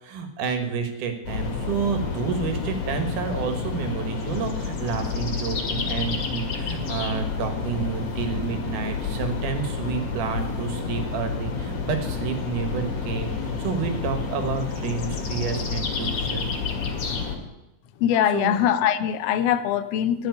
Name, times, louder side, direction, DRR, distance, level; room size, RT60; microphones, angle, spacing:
voice 1, 0.0-16.5 18.3-18.5, right 6 dB, 80° right, 6 dB, 3.1 m, -29 dB
sound 1, 1.3-17.4, left 5 dB, 60° left, 3.2 m, -29 dB
voice 2, 18.0-20.3, left 10 dB, 80° left, 11 dB, 1.4 m, -22 dB
14.0 x 5.9 x 9.6 m, 0.95 s
omnidirectional pair, 3.6 m